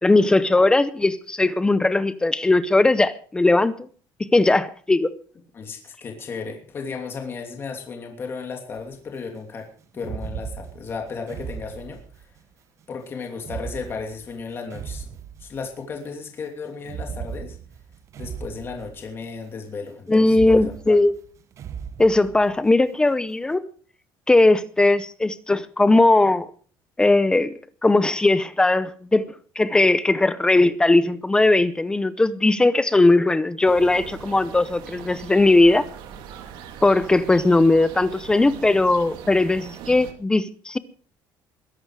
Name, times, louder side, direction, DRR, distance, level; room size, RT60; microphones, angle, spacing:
voice 1, 0.0-3.7 4.2-5.1 20.1-21.1 22.0-23.6 24.3-26.5 27.0-27.5 27.8-29.3 29.6-35.9 36.8-40.8, left 2 dB, 10° left, 0.7 m, -18 dB
voice 2, 5.5-9.7 9.9-12.3 12.9-15.1 15.4-17.6 18.2-21.0, left 5 dB, 30° left, 2.9 m, -34 dB
sound 1, 8.7-9.0 9.9-12.4 13.4-16.0 16.8-19.4 20.2-22.8, right 7 dB, 35° right, 0.9 m, -37 dB
sound 2, 33.6-40.1, right 9 dB, 75° right, 2.7 m, -40 dB
21.5 x 11.0 x 4.8 m
cardioid pair, 175°, 8 cm